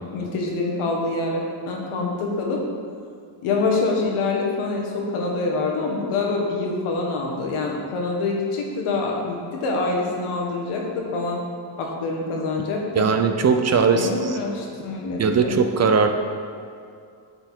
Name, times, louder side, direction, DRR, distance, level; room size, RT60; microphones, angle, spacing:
voice 1, 0.1-2.6 3.4-11.4 11.8-13.1 13.9-15.6, left 3 dB, 90° left, 0 dB, 1.4 m, -25 dB
voice 2, 12.9-14.4 15.2-16.1, right 5 dB, 35° right, 6 dB, 0.4 m, -19 dB
7.8 x 4.4 x 4.4 m, 2.3 s
cardioid pair, 110°, 49 cm